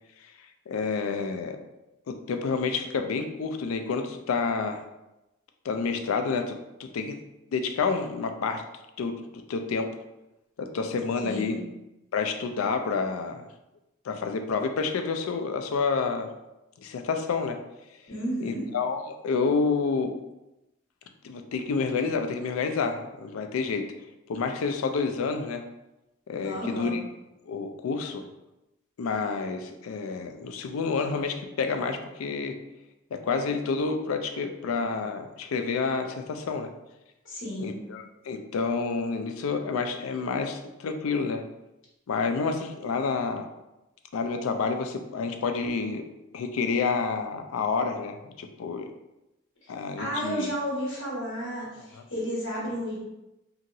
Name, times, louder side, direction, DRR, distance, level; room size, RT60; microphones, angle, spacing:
voice 1, 0.7-1.6 2.1-4.8 5.6-7.2 7.5-8.6 9.0-9.2 9.5-9.9 10.6-11.5 12.1-13.4 14.1-16.4 16.8-17.6 18.4-20.1 21.2-23.9 24.3-25.6 26.3-27.0 27.5-28.3 29.0-32.6 33.1-36.7 37.6-41.4 42.1-43.5 44.1-46.0 46.3-48.9 49.7-50.5, left 4 dB, 85° left, 6 dB, 0.4 m, -29 dB
voice 2, 11.2-11.6 18.1-18.7 26.4-27.0 37.2-37.8 49.6-49.7 50.0-53.0, equal, 60° left, -6 dB, 1.2 m, -32 dB
2.8 x 2.6 x 2.6 m, 0.93 s
head